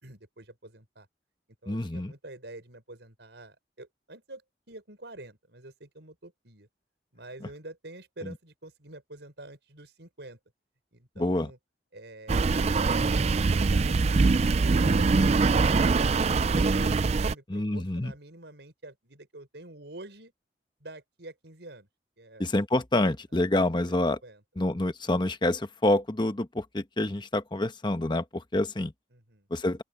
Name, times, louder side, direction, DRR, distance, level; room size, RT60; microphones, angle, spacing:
voice 1, 0.0-1.1 1.6-4.4 4.7-6.7 7.1-10.4 10.9-11.6 11.9-12.6 12.9-16.9 17.2-20.3 20.8-21.9 22.2-22.5 23.8-23.9 24.2-24.4 29.1-29.5, right 2 dB, 75° right, 5.0 m, -46 dB
voice 2, 1.7-2.1 11.2-11.5 17.5-18.1 22.4-24.2 24.6-28.9 29.5-29.8, left 1 dB, 25° left, 1.0 m, -27 dB
sound 1, 12.3-17.3, right 4 dB, 35° right, 0.4 m, -23 dB
open air
head